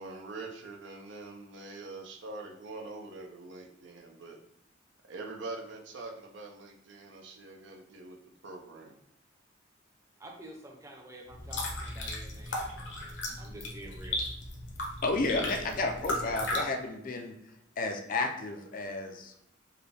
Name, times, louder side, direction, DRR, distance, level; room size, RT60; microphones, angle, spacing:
voice 1, 0.0-4.4 5.0-8.2 8.4-9.0, right 3 dB, 65° right, 2 dB, 0.6 m, -44 dB
voice 2, 10.2-14.2, right 1 dB, 15° right, 0 dB, 0.7 m, -49 dB
sound 1, 11.3-16.6, left 1 dB, 65° left, 0.8 m, -36 dB
voice 3, 15.0-17.3 17.8-19.3, left 3 dB, 45° left, 4 dB, 0.4 m, -32 dB
4.7 x 2.2 x 3.3 m, 0.78 s
head